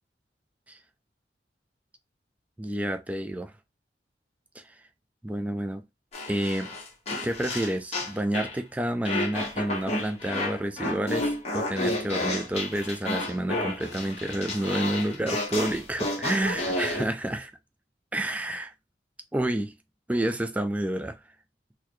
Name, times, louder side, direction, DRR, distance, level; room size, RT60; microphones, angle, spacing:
voice 1, 2.6-3.5 4.6-4.7 5.2-5.8 6.3-6.7 7.2-17.5 18.1-18.7 19.3-19.7 20.1-21.1, right 1 dB, 10° right, 0.3 m, -29 dB
sound 1, 6.1-8.6 9.0-17.0, left 2 dB, 35° left, 1.2 m, -31 dB
3.8 x 2.2 x 3.1 m
head